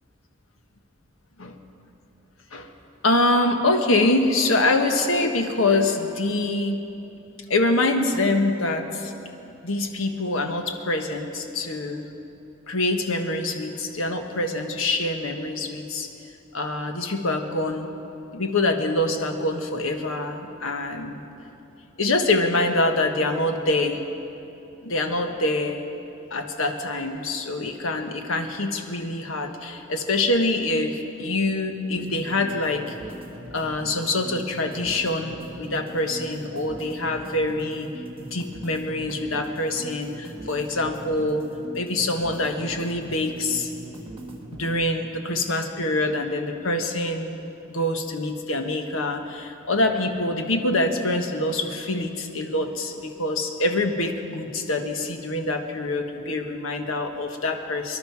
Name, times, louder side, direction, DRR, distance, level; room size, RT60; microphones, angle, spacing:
voice 1, 3.0-6.8 7.5-9.1 9.6-12.1 12.7-16.1 16.5-17.9 18.3-21.2 22.0-24.0 24.8-25.8 26.3-32.9 33.5-37.9 38.2-41.5 41.7-43.7 44.5-47.4 47.7-58.0, left 2 dB, 85° left, 5 dB, 1.3 m, -25 dB
sound 1, 31.9-44.9, right 1 dB, 30° right, 1.4 m, -41 dB
24.5 x 11.5 x 4.7 m, 2.9 s
head